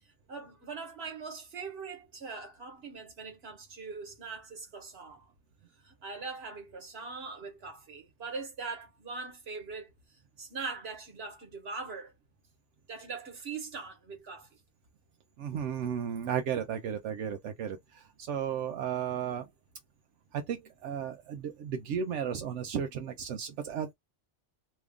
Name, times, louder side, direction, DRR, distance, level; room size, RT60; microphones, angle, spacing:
voice 1, 0.3-5.3 5.8-9.9 10.4-12.1 12.9-14.6, right 4 dB, 60° right, 1.4 m, -41 dB
voice 2, 15.4-19.5 20.3-23.9, right 8 dB, 75° right, 0.9 m, -34 dB
3.0 x 2.4 x 3.4 m
omnidirectional pair, 1.2 m